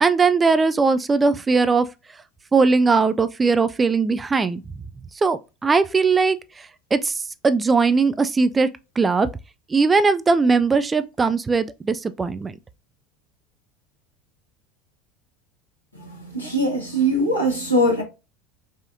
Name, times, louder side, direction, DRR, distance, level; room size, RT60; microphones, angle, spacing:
voice 1, 0.0-1.9 2.5-4.6 5.2-8.7 9.0-9.3 9.7-12.6, right 4 dB, 20° right, 0.4 m, -19 dB
voice 2, 15.9-18.0, equal, 90° left, 1.4 m, -22 dB
4.8 x 2.7 x 2.6 m
figure-of-eight pair, 75°, 0 cm